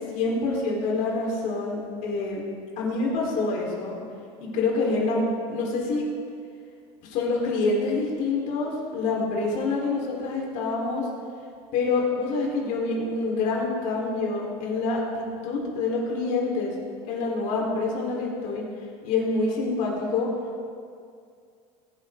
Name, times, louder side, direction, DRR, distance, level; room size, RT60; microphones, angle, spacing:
voice 1, 0.1-2.4 2.8-4.0 4.4-6.1 7.0-11.1 11.7-16.7 17.1-18.6 19.0-20.3, left 3 dB, 60° left, -2 dB, 4.6 m, -26 dB
22.0 x 11.0 x 4.0 m, 2.3 s
supercardioid pair, 115°, 15 cm